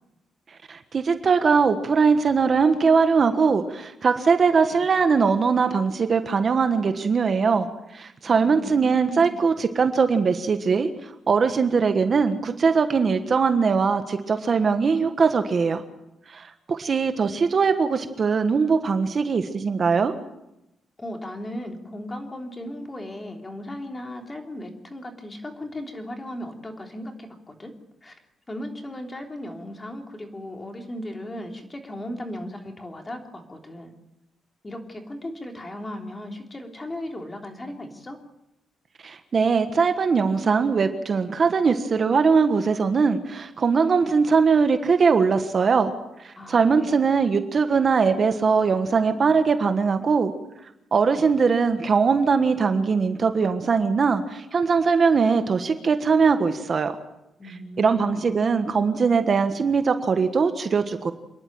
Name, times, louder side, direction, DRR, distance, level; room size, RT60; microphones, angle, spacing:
voice 1, 0.7-15.8 16.3-20.1 39.0-45.9 46.2-50.3 50.9-56.9 57.8-61.1, right 5 dB, 40° right, 8 dB, 1.4 m, -21 dB
voice 2, 8.3-9.4 21.0-27.7 28.0-28.2 28.5-33.9 34.6-38.2 46.4-47.0 57.4-58.3, left 1 dB, 20° left, 3 dB, 3.3 m, -36 dB
27.0 x 11.0 x 9.1 m, 0.90 s
cardioid pair, 110°, 0 cm